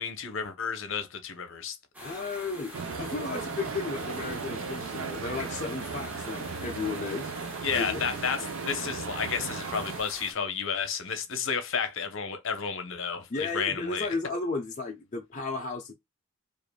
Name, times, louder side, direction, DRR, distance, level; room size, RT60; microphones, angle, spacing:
voice 1, 0.0-1.8 7.6-14.2, left 6 dB, 65° left, 0.8 m, -31 dB
sound 1, 1.9-10.3, equal, 5° right, 1.1 m, -45 dB
voice 2, 2.0-2.7 3.0-7.3 7.7-8.0 13.3-15.9, left 3 dB, 35° left, 0.5 m, -34 dB
sound 2, 2.7-10.0, right 5 dB, 70° right, 0.6 m, -36 dB
5.1 x 2.5 x 2.2 m
head